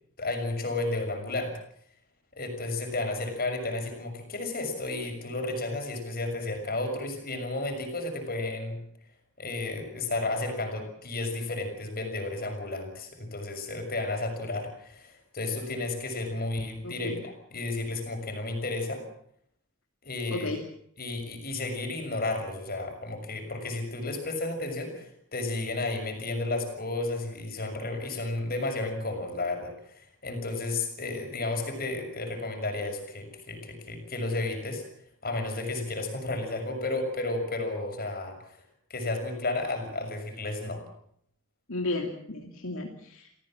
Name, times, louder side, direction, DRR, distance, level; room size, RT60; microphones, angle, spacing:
voice 1, 0.2-1.5 2.3-8.8 9.4-17.1 17.5-19.0 20.0-20.5 21.0-34.8 35.2-38.6 38.9-40.8, left 2 dB, 45° left, 5 dB, 6.4 m, -32 dB
voice 2, 16.8-17.2 20.3-20.6 41.7-43.4, left 2 dB, 65° left, 1 dB, 2.8 m, -34 dB
28.5 x 17.0 x 7.6 m, 0.69 s
head